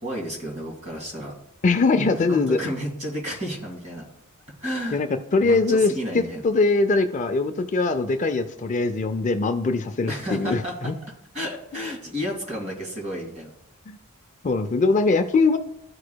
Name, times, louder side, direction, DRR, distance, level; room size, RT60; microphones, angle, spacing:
voice 1, 0.0-1.4 2.3-4.0 4.6-5.0 5.4-6.4 10.1-10.9 11.3-13.5, equal, 35° right, 0 dB, 2.2 m, -31 dB
voice 2, 1.6-2.6 4.9-10.9 13.9-14.0 14.4-15.6, left 3 dB, 35° left, 7 dB, 0.4 m, -22 dB
14.5 x 4.8 x 2.3 m, 0.78 s
head